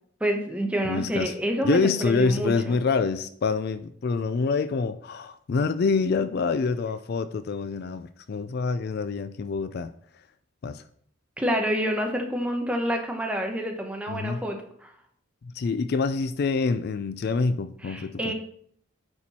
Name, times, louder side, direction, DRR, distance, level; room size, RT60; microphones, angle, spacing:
voice 1, 0.2-2.8 11.4-14.9 17.8-18.3, equal, 5° right, 3 dB, 1.0 m, -28 dB
voice 2, 0.8-1.3 1.6-9.9 10.6-10.8 14.1-14.4 15.5-18.3, left 4 dB, 50° left, 12 dB, 0.3 m, -26 dB
9.4 x 4.5 x 4.2 m, 0.63 s
head